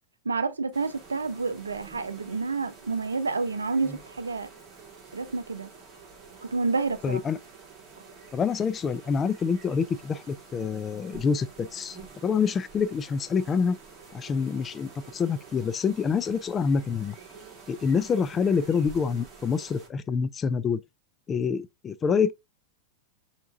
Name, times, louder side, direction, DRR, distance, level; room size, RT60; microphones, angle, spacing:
voice 1, 0.2-4.5 5.1-5.7 6.5-7.2, right 4 dB, 75° right, 0.6 m, -29 dB
sound 1, 0.7-19.9, right 5 dB, 30° right, 1.9 m, -48 dB
voice 2, 7.0-7.4 8.3-12.0 12.2-13.8 14.1-17.2 17.7-20.8 21.3-22.3, left 6 dB, 20° left, 0.4 m, -26 dB
6.9 x 2.9 x 2.4 m
figure-of-eight pair, 90°, 0 cm